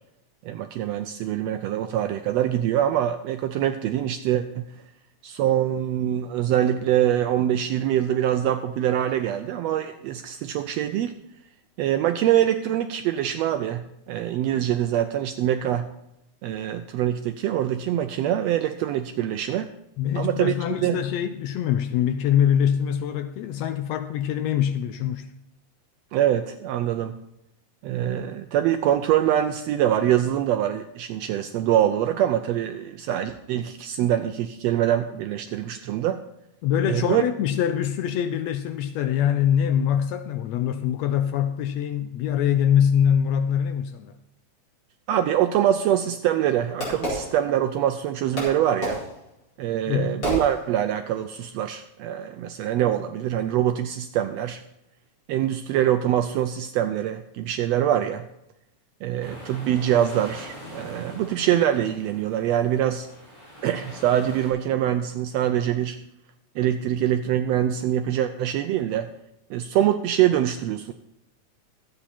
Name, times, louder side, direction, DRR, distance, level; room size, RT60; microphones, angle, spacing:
voice 1, 0.4-4.7 5.2-11.2 11.8-15.9 16.4-19.7 20.1-21.0 26.1-27.2 27.8-36.2 36.8-37.2 45.1-49.0 49.6-54.6 55.3-58.2 59.0-63.1 63.6-66.0 66.6-69.1 69.5-70.9, right 11 dB, 80° right, 8 dB, 1.5 m, -24 dB
voice 2, 20.0-25.3 36.6-44.1 49.9-50.2, left 9 dB, 80° left, 10 dB, 1.6 m, -24 dB
Fireworks, 45.7-47.9 48.4-51.1, equal, 30° left, 4.8 m, -32 dB
sound 1, 59.2-64.5, equal, 10° right, 5.3 m, -43 dB
13.0 x 8.7 x 4.3 m, 0.83 s
omnidirectional pair, 3.4 m